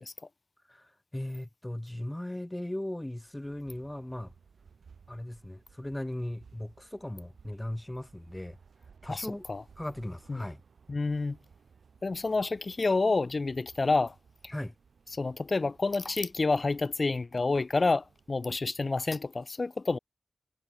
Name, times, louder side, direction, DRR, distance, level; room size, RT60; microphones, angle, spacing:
voice 1, 0.7-4.3 5.1-8.6 9.0-9.4 9.8-10.6 14.5-14.7, left 1 dB, 15° left, 0.8 m, -38 dB
sound 1, 3.2-19.0, right 6 dB, 85° right, 3.1 m, -59 dB
voice 2, 9.1-9.6 10.3-10.4 10.9-11.4 12.0-14.1 14.4-14.5 15.2-20.0, left 3 dB, 50° left, 0.4 m, -29 dB
cardioid pair, 45°, 0 cm